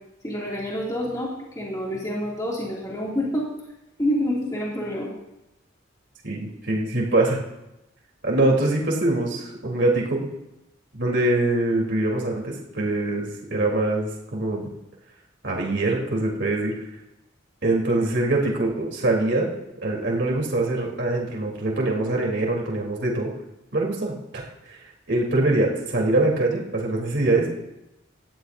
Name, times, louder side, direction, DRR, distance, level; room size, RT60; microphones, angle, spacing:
voice 1, 0.2-3.5 4.0-5.1, equal, 20° left, -5 dB, 2.6 m, -27 dB
voice 2, 6.2-7.4 8.2-10.3 10.9-14.7 15.4-16.7 17.6-19.5 19.8-23.3 23.7-24.5 25.1-27.5, right 2 dB, 60° right, -1 dB, 3.6 m, -23 dB
18.0 x 13.0 x 2.7 m, 0.92 s
head